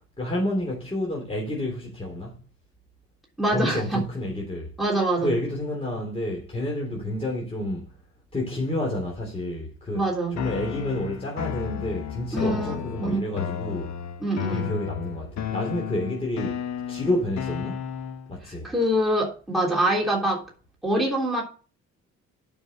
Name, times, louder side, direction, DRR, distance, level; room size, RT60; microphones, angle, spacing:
voice 1, 0.2-2.4 3.5-4.7 5.2-7.9 8.3-10.0 10.3-14.0 14.5-17.9 18.3-18.7, left 1 dB, 20° left, 3.3 m, -29 dB
voice 2, 3.4-4.0 4.8-5.3 9.9-10.3 12.3-13.2 14.2-14.7 18.4-20.4 20.8-21.4, right 1 dB, ahead, 3.3 m, -25 dB
sound 1, 10.4-18.4, left 9 dB, 65° left, 1.2 m, -33 dB
9.6 x 5.6 x 7.1 m
cardioid pair, 90°, 30 cm